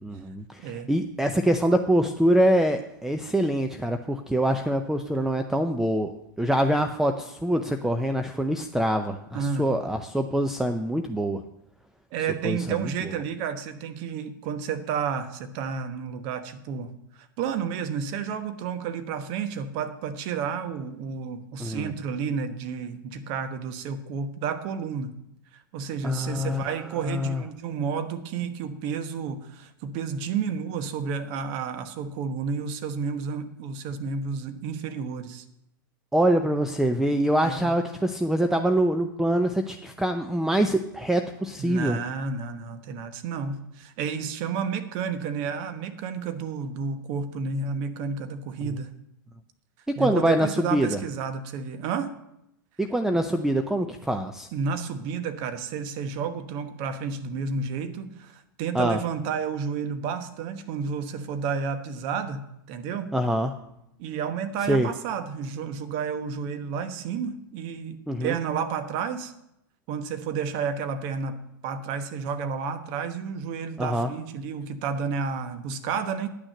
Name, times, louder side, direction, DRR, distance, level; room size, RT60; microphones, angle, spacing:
voice 1, 0.0-11.4 12.4-13.1 21.6-21.9 26.0-27.4 36.1-42.0 50.0-51.0 52.8-54.5 58.7-59.0 63.1-63.5 64.7-64.9 68.1-68.4 73.8-74.1, right 1 dB, 5° right, 6 dB, 0.6 m, -25 dB
voice 2, 9.3-9.7 12.1-16.9 17.4-25.2 25.7-35.4 37.4-37.7 41.6-48.9 50.0-52.1 54.5-63.1 64.0-69.3 69.9-76.3, right 6 dB, 50° right, 9 dB, 1.2 m, -31 dB
10.0 x 6.3 x 7.7 m, 0.82 s
hypercardioid pair, 105°, 11 cm